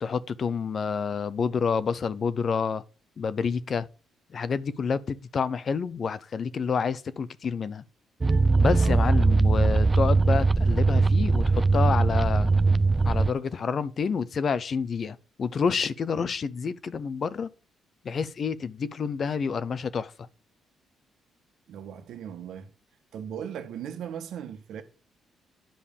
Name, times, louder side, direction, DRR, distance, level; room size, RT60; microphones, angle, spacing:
voice 1, 0.0-2.8 3.2-3.9 4.3-7.8 8.6-12.5 13.0-17.5 18.0-20.1, left 6 dB, 50° left, 0.8 m, -28 dB
sound 1, 8.2-13.3, right 3 dB, 25° right, 0.5 m, -21 dB
voice 2, 8.8-9.3 21.7-22.7 23.1-24.8, right 8 dB, 75° right, 1.4 m, -38 dB
10.5 x 5.4 x 6.9 m
cardioid pair, 90°, 0 cm